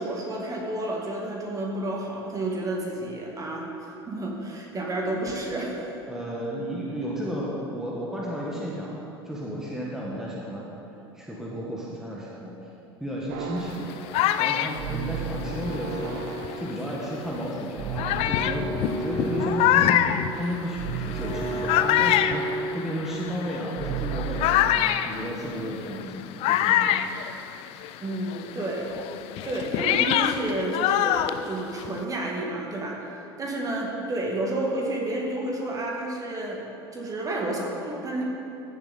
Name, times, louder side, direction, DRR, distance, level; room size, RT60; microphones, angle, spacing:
voice 1, 0.0-5.9 28.0-28.9 29.4-38.2, right 1 dB, 25° right, -1 dB, 2.1 m, -30 dB
voice 2, 6.0-10.7 11.1-12.5 13.0-13.9 14.4-20.0 20.3-24.5 25.0-27.0, equal, 5° right, -5 dB, 1.6 m, -33 dB
sound 1, 13.3-24.8, right 4 dB, 60° right, 1.2 m, -33 dB
sound 2, 13.7-16.7 17.4-17.5 18.0-28.0 28.3-32.0, left 12 dB, 50° left, 0.4 m, -26 dB
15.0 x 6.8 x 4.2 m, 2.9 s
figure-of-eight pair, 75°, 13 cm